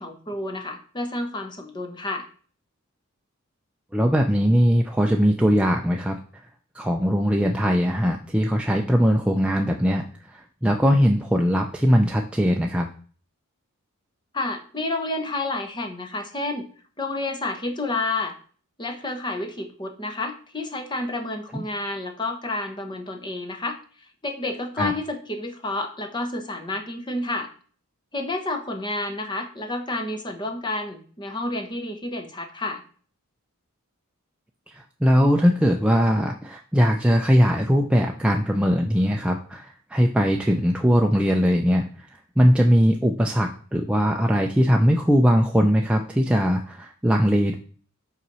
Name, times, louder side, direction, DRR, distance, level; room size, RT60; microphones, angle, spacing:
voice 1, 0.0-2.3 14.3-16.7 17.0-18.4 18.8-27.5 28.1-32.8, left 2 dB, 20° left, 6 dB, 0.9 m, -30 dB
voice 2, 3.9-6.2 6.7-12.9 21.5-21.6 24.8-24.9 34.7-47.6, equal, 5° right, 1 dB, 0.4 m, -20 dB
5.6 x 4.1 x 6.1 m, 0.43 s
head